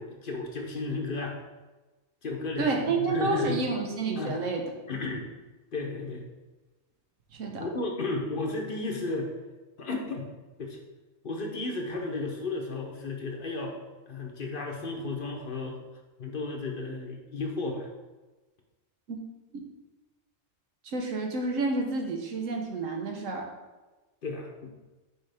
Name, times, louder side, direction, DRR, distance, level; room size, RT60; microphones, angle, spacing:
voice 1, 0.0-1.4 2.2-3.7 4.1-4.4 4.9-5.3 5.7-6.2 7.6-9.3 9.8-10.3 10.6-10.8 11.2-13.8 14.1-15.8 16.2-17.9 24.2-24.7, left 3 dB, 50° left, 1 dB, 0.9 m, -33 dB
voice 2, 2.6-4.6 7.3-7.6 19.1-19.2 19.5-19.6 20.8-23.5, right 3 dB, 85° right, 2 dB, 1.3 m, -29 dB
6.3 x 4.7 x 3.4 m, 1.2 s
omnidirectional pair, 1.3 m